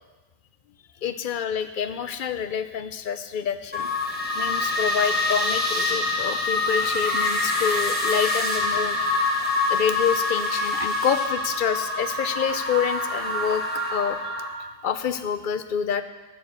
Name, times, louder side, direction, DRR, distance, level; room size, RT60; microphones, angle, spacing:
voice 1, 1.0-3.9 4.3-9.0 9.7-13.6 13.9-14.2 14.6-16.0, left 8 dB, 60° left, 11 dB, 0.8 m, -27 dB
sound 1, 3.7-14.5, left 2 dB, 10° left, 1.5 m, -25 dB
11.0 x 7.1 x 7.6 m, 1.2 s
omnidirectional pair, 1.0 m